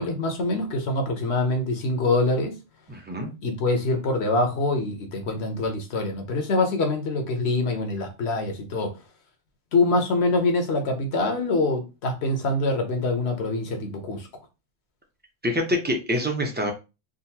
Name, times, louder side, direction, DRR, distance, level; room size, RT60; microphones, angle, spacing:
voice 1, 0.0-2.6 3.4-8.9 9.7-14.3, left 2 dB, 65° left, 1.1 m, -25 dB
voice 2, 2.9-3.3 15.4-16.7, left 1 dB, 10° right, 0.6 m, -26 dB
3.7 x 2.5 x 2.8 m
omnidirectional pair, 1.2 m